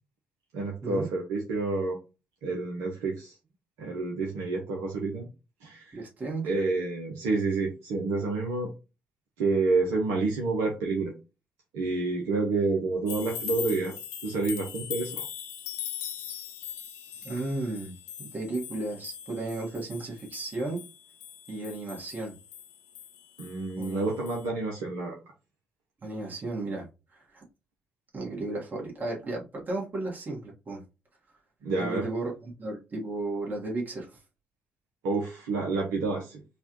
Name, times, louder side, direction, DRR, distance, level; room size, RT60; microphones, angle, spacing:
voice 1, 0.5-2.0 2.4-3.3 3.8-5.3 5.6-6.0 6.4-8.7 9.4-11.1 11.7-13.9 14.2-15.1 23.4-25.2 31.6-32.1 35.0-36.4, right 3 dB, 65° right, 0.9 m, -29 dB
voice 2, 5.9-6.5 17.2-20.8 21.5-22.4 23.8-24.1 26.0-27.4 28.1-30.8 31.8-34.2, right 2 dB, 35° right, 1.7 m, -34 dB
sound 1, 13.1-24.0 24.3-24.4, left 9 dB, 70° left, 0.8 m, -40 dB
5.2 x 2.5 x 3.0 m
figure-of-eight pair, 45°, 5 cm